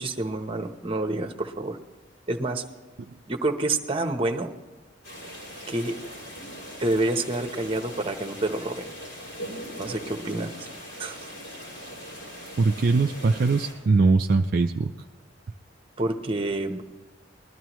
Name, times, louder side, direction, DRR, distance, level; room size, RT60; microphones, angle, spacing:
voice 1, 0.0-1.8 2.3-2.6 3.3-4.5 5.7-5.9 6.8-8.9 9.8-10.7 11.0-11.3 16.0-16.8, right 2 dB, 30° right, 6 dB, 0.9 m, -28 dB
sound 1, 5.0-13.7, equal, 85° left, 5.5 m, -40 dB
voice 2, 12.6-14.9, right 3 dB, 50° right, 4 dB, 0.4 m, -21 dB
20.5 x 13.0 x 3.0 m, 1.3 s
head